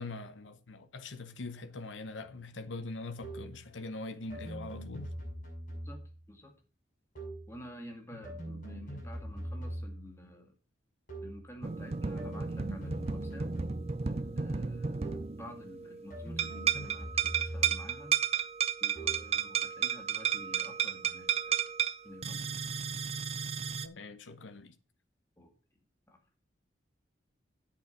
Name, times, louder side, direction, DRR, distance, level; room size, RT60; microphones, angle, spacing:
voice 1, 0.0-5.1 8.1-8.2 23.8-24.7, left 3 dB, 85° left, 0.9 m, -42 dB
sound 1, 3.2-3.6 4.3-6.2 7.1-7.6 8.2-10.1 11.1-11.5 12.2-14.1 15.0-15.4 16.1-18.0 19.0-19.4, right 1 dB, 45° left, 6.0 m, -42 dB
voice 2, 7.5-10.5 11.2-13.5 14.0-15.0 15.4-18.1 18.8-21.6 22.0-22.5 25.4-25.5 26.1-26.2, left 1 dB, 15° left, 2.1 m, -50 dB
sound 2, 11.6-16.1 16.4-23.9, right 7 dB, 35° right, 0.5 m, -33 dB
8.7 x 7.8 x 5.2 m
head